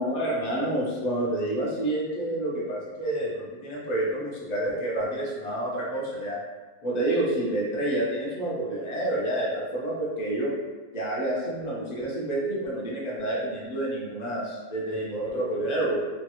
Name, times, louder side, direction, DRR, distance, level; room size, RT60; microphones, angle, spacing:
voice 1, 0.0-6.4 6.8-10.5 10.9-16.0, right 1 dB, 50° left, -5 dB, 0.5 m, -28 dB
3.1 x 2.3 x 2.9 m, 1.3 s
omnidirectional pair, 1.6 m